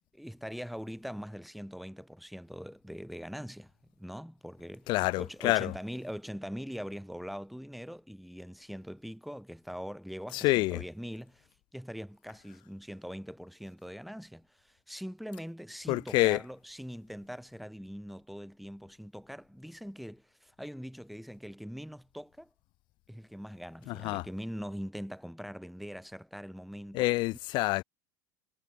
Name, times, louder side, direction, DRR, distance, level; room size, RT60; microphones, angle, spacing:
voice 1, 0.1-3.7 4.0-4.9 5.2-22.5 23.1-27.1, equal, ahead, 4.9 m, -42 dB
voice 2, 4.9-5.7 10.3-10.8 15.9-16.4 23.9-24.2 26.9-27.8, left 20 dB, 45° left, 0.5 m, -27 dB
figure-of-eight pair, 75°, 11 cm